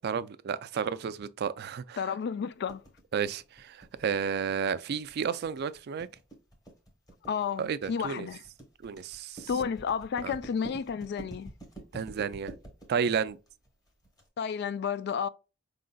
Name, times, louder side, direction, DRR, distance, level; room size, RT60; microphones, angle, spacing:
voice 1, 0.0-2.1 3.1-6.1 7.6-8.3 8.8-9.5 10.2-10.3 11.9-12.5 12.9-13.4, right 6 dB, 55° right, 0.4 m, -32 dB
voice 2, 2.0-2.8 7.3-8.4 9.5-11.5 14.4-15.3, left 6 dB, 55° left, 0.3 m, -31 dB
sound 1, 2.7-14.2, right 2 dB, 20° left, 1.1 m, -48 dB
4.8 x 3.8 x 2.2 m
head